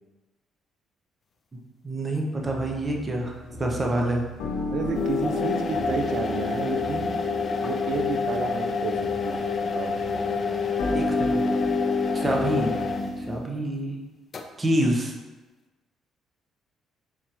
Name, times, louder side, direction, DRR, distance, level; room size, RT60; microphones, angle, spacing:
voice 1, 1.8-3.3 3.6-4.2 10.9-11.4 12.1-12.8 13.2-14.0 14.6-15.1, right 1 dB, 25° right, 0 dB, 0.7 m, -26 dB
sound 1, 2.4-13.4, left 1 dB, 80° left, 0.9 m, -33 dB
voice 2, 4.7-7.2 7.6-9.4 9.7-10.0, right 5 dB, 65° right, 5 dB, 0.4 m, -31 dB
sound 2, 5.0-13.3 14.3-14.4, left 5 dB, 45° left, 0.5 m, -28 dB
4.3 x 3.7 x 3.0 m, 1.2 s
supercardioid pair, 75°, 0 cm